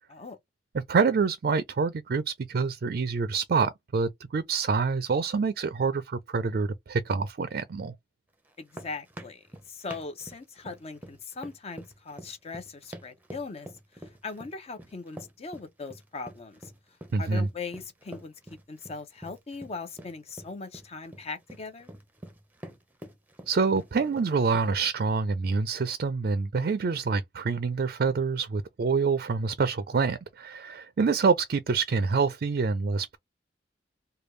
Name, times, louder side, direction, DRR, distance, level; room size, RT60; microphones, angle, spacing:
voice 1, 0.7-7.9 17.1-17.5 23.5-33.2, right 5 dB, 55° right, 0.4 m, -26 dB
sound 1, 8.4-24.9, right 1 dB, 10° right, 0.6 m, -46 dB
voice 2, 8.6-13.7 14.0-16.7 17.2-18.3 18.7-21.9, left 4 dB, 35° left, 0.6 m, -40 dB
3.3 x 2.3 x 3.1 m
head